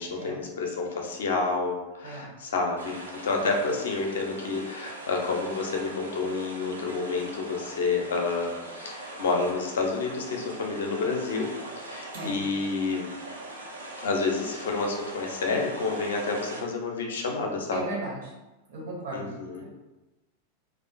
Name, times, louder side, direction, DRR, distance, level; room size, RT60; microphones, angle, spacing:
voice 1, 0.0-11.5 11.8-13.1 14.0-17.9 19.1-19.6, left 4 dB, 60° left, 1 dB, 0.4 m, -29 dB
sound 1, 2.8-16.6, right 1 dB, 75° right, 0.4 m, -41 dB
voice 2, 17.7-18.3 18.7-19.3, right 2 dB, 60° right, -4 dB, 0.8 m, -35 dB
2.4 x 2.3 x 2.3 m, 1.1 s
figure-of-eight pair, 90°, 0 cm